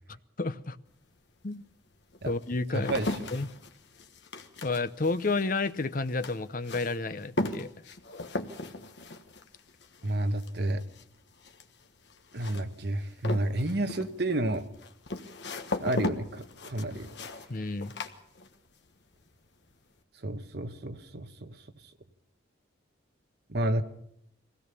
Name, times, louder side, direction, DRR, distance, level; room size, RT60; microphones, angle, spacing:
voice 1, 0.4-0.8 1.4-1.6 2.2-2.9 3.3-3.5 4.6-7.7 17.5-17.9, left 3 dB, 45° left, 12 dB, 0.7 m, -30 dB
sound 1, 0.9-1.0 1.7-18.9 19.1-19.7, left 2 dB, 65° left, 1.3 m, -38 dB
voice 2, 2.7-3.3 10.0-10.9 12.3-14.7 15.8-17.4 20.2-21.9 23.5-23.8, right 1 dB, 55° right, 8 dB, 1.2 m, -31 dB
22.5 x 17.0 x 6.9 m, 0.75 s
head